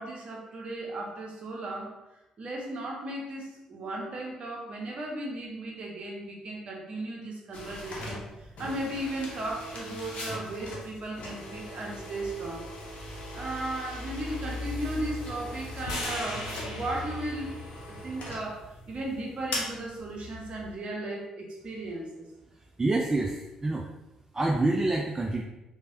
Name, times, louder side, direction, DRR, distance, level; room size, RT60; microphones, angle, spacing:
voice 1, 0.0-1.9 2.4-12.7 13.3-17.5 17.9-22.2, right 1 dB, 45° right, -1 dB, 0.7 m, -36 dB
sound 1, 7.5-20.8, left 1 dB, 55° left, 0.8 m, -39 dB
sound 2, 15.8-20.0, left 2 dB, 85° left, 0.4 m, -41 dB
voice 2, 22.8-23.9 24.3-25.4, right 2 dB, 20° right, 0 dB, 0.3 m, -27 dB
3.2 x 2.1 x 2.6 m, 0.97 s
hypercardioid pair, 45°, 3 cm